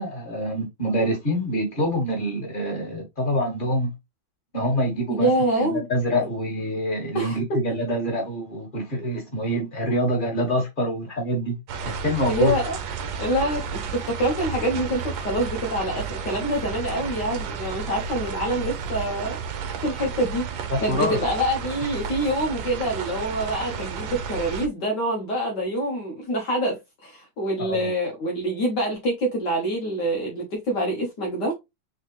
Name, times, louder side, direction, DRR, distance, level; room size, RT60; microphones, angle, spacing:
voice 1, 0.0-3.9 4.5-5.3 5.6-11.6 11.8-12.6 20.7-21.2 27.7-27.9, equal, 25° left, 2.2 m, -26 dB
voice 2, 5.1-5.9 7.1-7.4 12.2-12.8 13.2-20.5 20.8-31.6, right 1 dB, 60° left, 1.8 m, -26 dB
sound 1, 11.7-24.7, right 6 dB, 75° right, 1.6 m, -32 dB
4.3 x 4.0 x 3.1 m
omnidirectional pair, 2.1 m